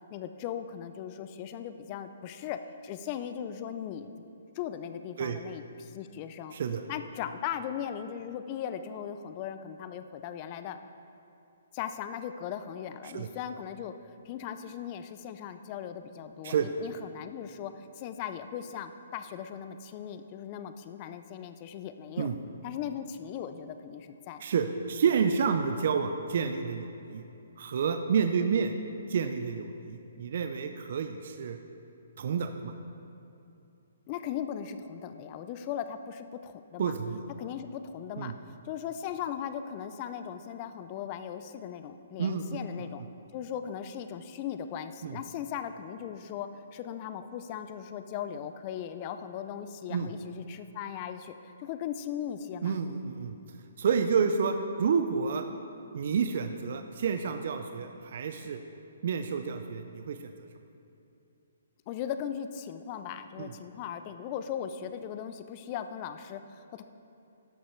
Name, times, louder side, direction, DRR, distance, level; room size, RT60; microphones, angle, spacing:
voice 1, 0.1-4.1 4.5-6.6 6.9-10.8 11.7-13.9 14.2-22.3 22.6-24.4 34.1-36.9 37.4-43.0 43.3-52.7 61.9-66.8, left 9 dB, 30° left, 10 dB, 0.4 m, -38 dB
voice 2, 6.5-6.8 13.0-13.3 16.4-16.7 22.2-22.3 24.4-27.2 27.6-28.7 29.1-31.6 32.2-32.7 36.8-37.2 38.2-38.3 42.2-42.6 45.0-45.2 49.9-50.1 52.6-53.4 53.8-55.4 55.9-58.6 59.0-60.3 63.4-63.5, right 6 dB, 55° right, 7 dB, 0.5 m, -29 dB
13.0 x 5.4 x 4.5 m, 2.8 s
hypercardioid pair, 155°, 0 cm